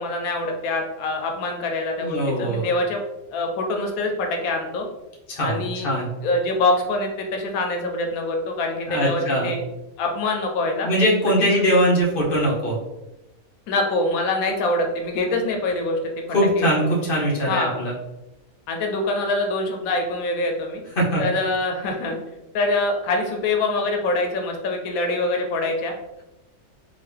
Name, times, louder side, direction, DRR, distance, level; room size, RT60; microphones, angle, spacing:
voice 1, 0.0-3.0 3.3-4.9 5.4-5.9 6.2-9.6 10.0-10.9 11.3-11.5 13.7-16.0 16.6-16.7 17.5-17.8 18.7-20.8 21.2-22.2 22.5-25.9, left 2 dB, 85° left, 2 dB, 1.0 m, -24 dB
voice 2, 2.0-2.6 5.3-6.1 8.9-9.5 10.8-12.8 16.3-17.9 21.0-21.2, equal, 45° left, -4 dB, 1.2 m, -21 dB
3.8 x 2.4 x 3.3 m, 0.94 s
omnidirectional pair, 1.5 m